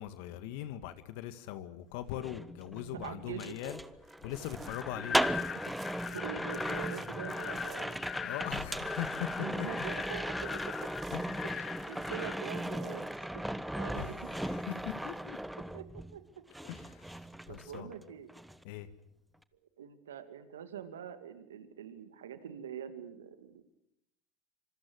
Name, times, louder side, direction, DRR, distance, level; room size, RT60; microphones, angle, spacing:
voice 1, 0.0-5.2 8.2-9.7 11.1-11.5 13.9-15.4 16.6-17.9 18.6-18.9, left 13 dB, 65° left, 1.8 m, -41 dB
sound 1, 2.1-16.2 16.5-18.0 18.3-18.6, right 1 dB, 5° right, 1.1 m, -37 dB
voice 2, 3.0-3.6 5.7-5.8 6.1-8.0 9.4-10.9 11.5-13.4 13.8-14.2 15.7-16.2 17.5-18.3 19.8-23.6, right 8 dB, 85° right, 2.3 m, -44 dB
sound 2, 4.0-8.5 8.8-13.2, right 7 dB, 30° right, 1.7 m, -59 dB
sound 3, 4.6-12.4, left 8 dB, 35° left, 0.9 m, -41 dB
26.0 x 25.0 x 6.4 m
hypercardioid pair, 90°, 0 cm